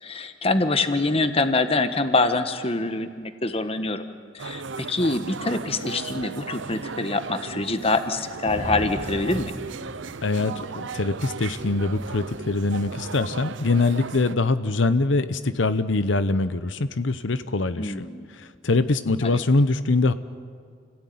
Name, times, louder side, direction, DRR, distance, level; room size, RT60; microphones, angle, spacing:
voice 1, 0.0-4.0 4.3-9.5 17.8-18.3 19.2-19.4, left 2 dB, 30° left, 9 dB, 1.4 m, -25 dB
sound 1, 4.4-14.4, right 4 dB, 80° right, 0.7 m, -36 dB
Thunder / Rain, 8.4-13.4, equal, 20° right, 3.2 m, -39 dB
voice 2, 10.2-20.1, left 3 dB, 85° left, 12 dB, 0.9 m, -23 dB
29.5 x 17.0 x 9.5 m, 2.1 s
head